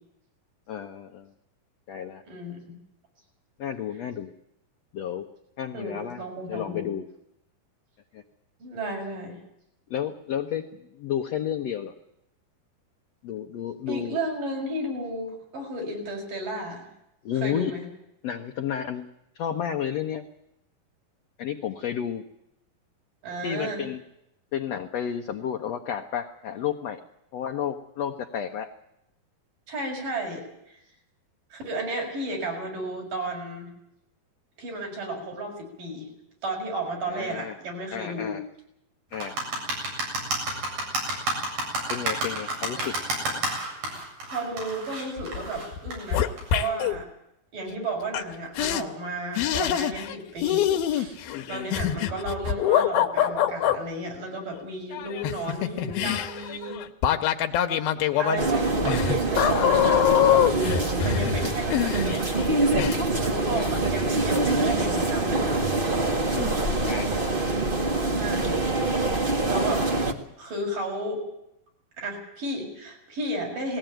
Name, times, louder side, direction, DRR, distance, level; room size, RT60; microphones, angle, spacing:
voice 1, 0.7-1.3 1.9-2.2 3.6-4.3 4.9-5.3 5.6-6.2 6.5-7.1 8.1-8.2 9.9-10.7 11.0-11.9 13.2-14.2 17.2-17.7 18.2-19.1 19.4-20.3 21.4-22.2 23.4-24.0 24.5-27.0 27.3-28.7 37.1-37.6 37.9-38.4 39.1-39.4 41.9-43.0 51.3-51.7 63.5-63.7 66.3-66.6 66.9-67.1, left 9 dB, 65° left, 4 dB, 1.7 m, -31 dB
voice 2, 2.3-2.6 5.7-6.9 8.6-9.4 13.4-13.5 13.9-16.9 17.3-17.9 23.2-23.8 29.7-30.8 31.5-33.7 34.6-36.1 36.4-38.4 44.2-47.1 47.5-51.2 51.5-56.8 58.2-60.4 61.0-62.2 62.6-62.8 63.2-65.7 68.1-68.6 69.4-69.9 70.4-71.2 72.0-73.8, right 1 dB, 60° right, 1 dB, 7.8 m, -33 dB
sound 1, 39.1-46.7, right 1 dB, 80° right, 9.6 m, -30 dB
sound 2, 45.2-45.5 45.7-47.0 48.1-48.2 48.6-48.8 49.4-50.2 50.4-53.8 54.9-62.5 62.8-63.0, left 10 dB, 90° left, 3.1 m, -24 dB
sound 3, 58.4-70.1, right 2 dB, 30° right, 0.9 m, -25 dB
20.0 x 18.0 x 9.2 m, 0.82 s
omnidirectional pair, 4.2 m